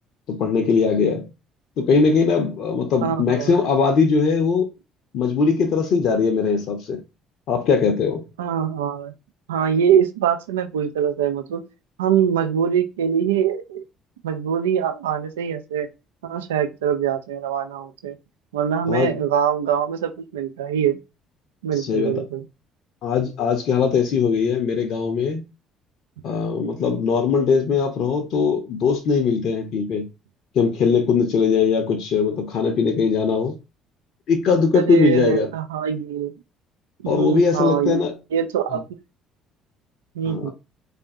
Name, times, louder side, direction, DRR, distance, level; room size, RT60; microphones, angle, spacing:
voice 1, 0.3-1.3 1.8-4.7 5.1-7.0 7.5-8.3 18.9-19.1 21.8-22.2 23.0-25.5 26.2-30.1 30.5-33.6 34.3-35.5 37.1-38.1 38.7-38.8 40.3-40.5, left 5 dB, 55° left, 0.6 m, -20 dB
voice 2, 3.0-3.6 8.4-9.1 9.5-11.6 12.0-13.8 14.2-15.9 16.2-18.2 18.5-21.0 21.6-22.4 34.7-36.3 37.0-38.0 38.3-38.8 40.2-40.5, right 8 dB, 75° right, 0.4 m, -23 dB
3.9 x 3.3 x 2.7 m
figure-of-eight pair, 50°, 0 cm